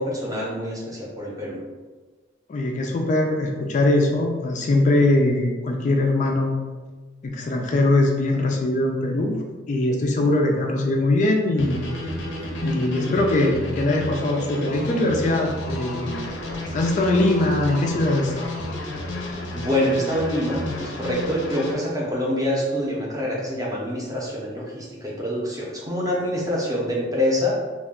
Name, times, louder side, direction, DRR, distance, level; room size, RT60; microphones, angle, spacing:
voice 1, 0.0-1.6 19.5-27.5, left 1 dB, 20° right, -4 dB, 0.6 m, -26 dB
voice 2, 2.5-6.6 7.2-11.8 12.6-16.3 16.7-18.5, left 2 dB, 40° left, 1 dB, 0.3 m, -21 dB
sound 1, 11.5-21.7, left 1 dB, 90° left, 0.5 m, -31 dB
2.3 x 2.2 x 3.5 m, 1.3 s
head